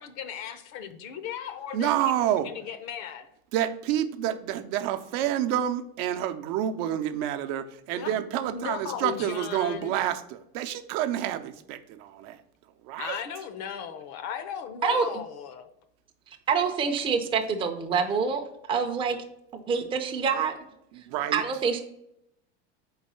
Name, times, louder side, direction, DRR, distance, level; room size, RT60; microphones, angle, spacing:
voice 1, 0.0-3.3 7.9-8.1 8.5-10.0 13.0-15.7, left 8 dB, 50° left, 11 dB, 0.7 m, -36 dB
voice 2, 1.7-2.5 3.5-12.4 12.8-13.2 20.9-21.4, right 11 dB, 60° right, 9 dB, 0.7 m, -28 dB
voice 3, 16.5-19.2 19.5-20.5 21.3-21.8, right 6 dB, 15° right, 3 dB, 0.5 m, -26 dB
4.3 x 4.0 x 5.5 m, 0.79 s
supercardioid pair, 135°, 34 cm